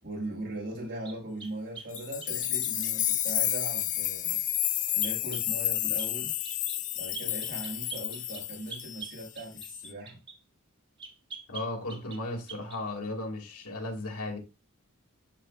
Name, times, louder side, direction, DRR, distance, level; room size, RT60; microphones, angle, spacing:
voice 1, 0.0-4.4 4.9-6.3 6.9-10.2, right 1 dB, 50° right, 4.6 m, -39 dB
sound 1, 1.0-3.0 5.0-5.5 6.0-6.2 6.4-6.8 7.1-10.4 11.0-12.2 12.5-12.8, right 5 dB, 20° right, 1.0 m, -44 dB
sound 2, 1.9-9.3 9.6-9.9, left 13 dB, 35° left, 0.4 m, -31 dB
voice 2, 11.5-14.4, left 2 dB, 85° left, 2.5 m, -35 dB
12.0 x 4.4 x 2.5 m
head